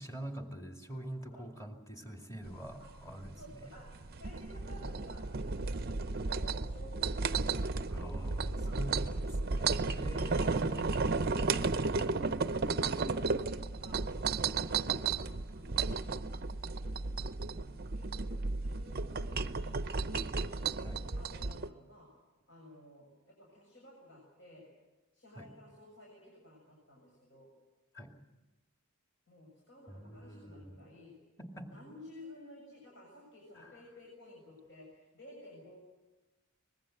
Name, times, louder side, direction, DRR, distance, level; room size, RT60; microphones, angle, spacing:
voice 1, 0.0-3.4 7.9-10.9 20.8-21.0 25.3-25.5 27.9-28.2 29.9-30.8 31.4-31.7 33.6-33.7, right 1 dB, 15° left, 3 dB, 2.3 m, -45 dB
sound 1, 2.4-21.7, right 4 dB, 45° right, 0.7 m, -34 dB
voice 2, 3.4-9.8 10.2-17.0 17.5-20.5 20.9-22.1 22.5-24.7 25.1-27.5 29.3-31.1 31.6-35.8, left 1 dB, 55° left, -2 dB, 7.0 m, -54 dB
25.0 x 20.5 x 7.8 m, 1.1 s
head